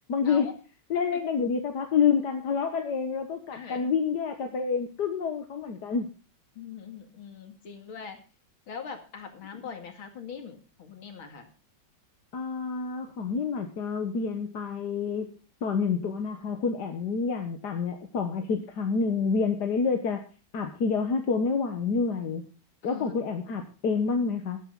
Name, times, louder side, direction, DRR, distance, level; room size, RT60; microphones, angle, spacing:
voice 1, 0.1-0.5 0.9-6.1 12.3-20.3 20.5-22.5 22.8-24.6, left 5 dB, 55° left, 5 dB, 1.7 m, -28 dB
voice 2, 3.5-3.9 6.5-8.2 8.7-11.5 22.8-23.2, left 6 dB, 85° left, 5 dB, 3.0 m, -42 dB
13.0 x 11.5 x 3.8 m, 0.34 s
omnidirectional pair, 2.2 m